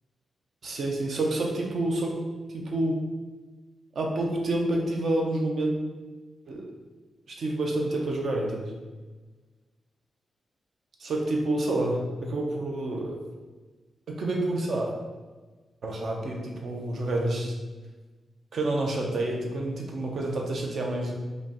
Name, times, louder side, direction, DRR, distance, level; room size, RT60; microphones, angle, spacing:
voice 1, 0.6-2.2 2.5-3.0 3.9-5.8 6.5-6.7 7.3-8.6 11.0-13.2 14.1-14.9 15.8-17.5 18.5-21.1, right 1 dB, 60° right, 0 dB, 0.7 m, -28 dB
4.9 x 2.3 x 2.9 m, 1.3 s
wide cardioid pair, 115°, 0 cm